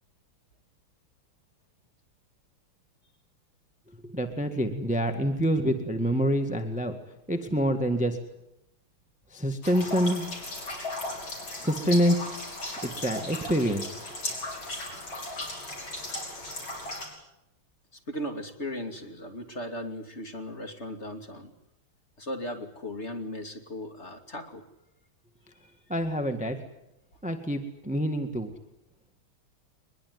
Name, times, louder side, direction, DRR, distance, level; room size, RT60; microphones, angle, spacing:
voice 1, 4.0-6.9 7.3-8.2 9.3-10.3 11.6-12.3 12.8-13.8 25.9-26.6 27.2-28.5, equal, 5° right, 7 dB, 1.6 m, -26 dB
sound 1, 9.6-17.1, left 2 dB, 65° left, 6.8 m, -36 dB
voice 2, 17.9-21.5 22.2-24.6 25.5-25.8, left 1 dB, 30° left, 5 dB, 2.9 m, -37 dB
23.0 x 21.5 x 9.6 m, 0.85 s
omnidirectional pair, 2.3 m